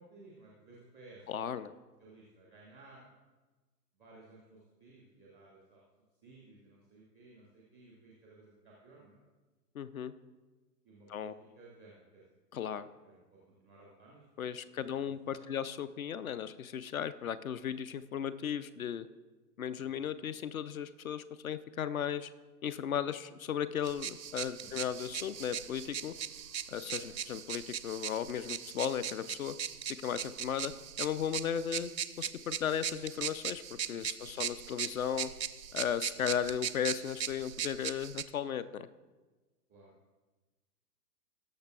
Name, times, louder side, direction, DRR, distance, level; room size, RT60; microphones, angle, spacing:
voice 1, 0.0-1.7 2.0-3.0 4.0-5.8 6.2-9.2 10.8-12.2 13.0-15.5 19.8-20.1 24.6-25.0 26.9-27.0 33.8-34.4 39.7-40.2, right 2 dB, 5° left, -4 dB, 0.4 m, -58 dB
voice 2, 1.3-1.7 9.7-10.1 11.1-11.3 12.5-12.9 14.4-19.1 19.6-22.3 22.6-26.1 26.7-29.5 29.9-30.7 31.0-31.9 32.2-35.3 35.7-38.9, left 9 dB, 55° left, 15 dB, 0.5 m, -36 dB
sound 1, 23.8-38.2, right 8 dB, 85° right, 0.6 m, -39 dB
18.5 x 6.7 x 2.3 m, 1.2 s
figure-of-eight pair, 115°, 50 cm